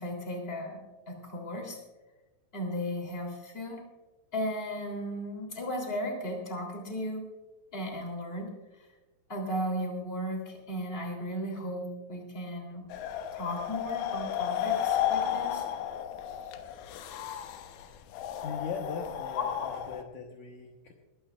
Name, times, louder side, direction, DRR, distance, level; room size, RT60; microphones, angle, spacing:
voice 1, 0.0-1.8 2.5-3.8 4.3-7.3 7.7-8.5 9.3-12.9 13.3-15.6 19.4-19.8, equal, 15° left, 1 dB, 2.7 m, -35 dB
sound 1, 12.9-20.0, left 10 dB, 90° left, 3.6 m, -33 dB
voice 2, 18.4-20.9, left 5 dB, 70° left, 0 dB, 1.8 m, -39 dB
20.5 x 15.5 x 2.5 m, 1.1 s
omnidirectional pair, 5.4 m